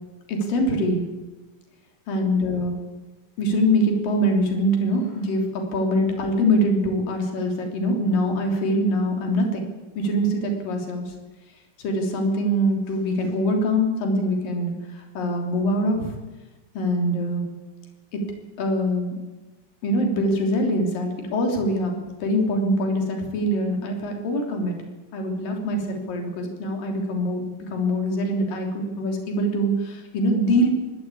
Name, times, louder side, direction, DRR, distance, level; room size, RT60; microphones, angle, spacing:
voice 1, 0.3-1.0 2.1-2.8 3.4-9.6 10.0-11.1 11.8-16.1 16.7-17.4 18.1-18.2 18.6-19.2 19.8-24.7 25.1-30.7, equal, 65° left, 2 dB, 4.8 m, -23 dB
26.0 x 12.5 x 8.5 m, 1.2 s
omnidirectional pair, 4.4 m